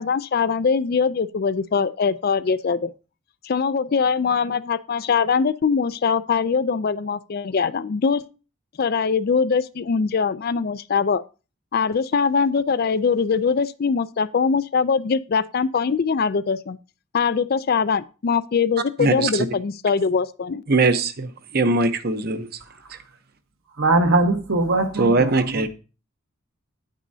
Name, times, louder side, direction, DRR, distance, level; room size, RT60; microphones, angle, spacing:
voice 1, 0.0-2.9 3.4-8.2 8.8-11.2 11.7-16.8 17.1-20.6, left 5 dB, 45° left, 0.4 m, -22 dB
voice 2, 19.0-19.5 20.7-22.5 22.9-23.0 25.0-25.7, right 3 dB, 45° right, 0.8 m, -21 dB
voice 3, 23.8-25.7, right 2 dB, 70° right, 1.2 m, -21 dB
9.6 x 9.0 x 2.7 m
head